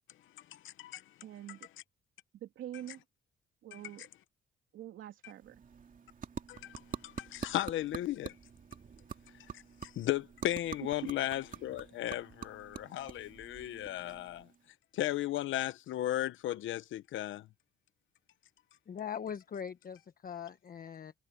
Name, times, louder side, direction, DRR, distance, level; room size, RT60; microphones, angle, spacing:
voice 1, 0.5-1.0 3.7-3.8 6.5-6.7 7.0-8.3 10.0-14.5 14.9-17.5, left 13 dB, 80° left, 1.0 m, -35 dB
voice 2, 1.2-1.7 2.3-3.0 3.6-4.1 4.7-5.6 10.9-11.1 11.5-11.6, right 12 dB, 80° right, 3.2 m, -45 dB
sound 1, 5.2-14.7, right 6 dB, 40° right, 2.7 m, -47 dB
voice 3, 18.9-21.1, left 8 dB, 45° left, 1.2 m, -41 dB
cardioid pair, 90°, 20 cm